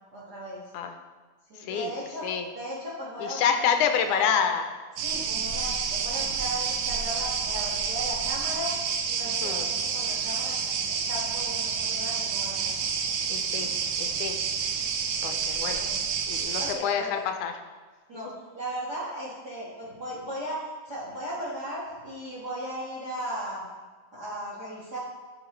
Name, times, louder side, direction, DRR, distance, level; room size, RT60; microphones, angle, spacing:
voice 1, 0.1-0.6 1.5-4.5 5.0-8.7 9.1-12.8 14.0-14.2 15.6-17.1 18.1-23.6 24.1-25.0, equal, 40° right, -6 dB, 1.6 m, -37 dB
voice 2, 1.6-1.9 2.2-2.5 3.2-4.6 9.4-9.6 13.3-13.7 14.0-14.4 15.2-15.8 16.3-17.5, left 7 dB, 80° left, 6 dB, 2.0 m, -27 dB
sound 1, 5.0-16.7, right 6 dB, 75° right, 2.1 m, -29 dB
13.0 x 6.2 x 3.1 m, 1.4 s
omnidirectional pair, 3.7 m